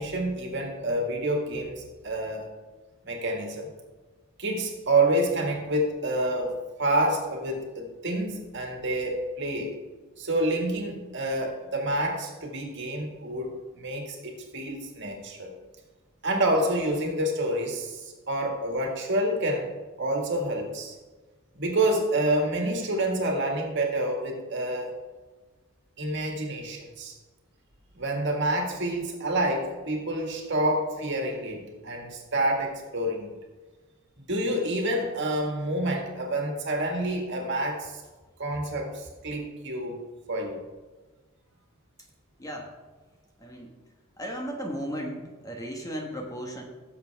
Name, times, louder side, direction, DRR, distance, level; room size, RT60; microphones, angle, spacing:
voice 1, 0.0-2.4 3.0-3.7 4.4-6.5 6.8-9.7 10.2-15.5 16.2-19.7 20.0-20.9 21.5-24.9 26.0-27.1 28.0-33.3 34.3-38.0 38.4-40.0 40.3-40.6, right 1 dB, 55° right, 1 dB, 1.8 m, -28 dB
voice 2, 42.4-42.7 43.4-43.7 44.2-46.6, equal, 15° left, 1 dB, 1.3 m, -35 dB
16.0 x 7.2 x 3.5 m, 1.3 s
head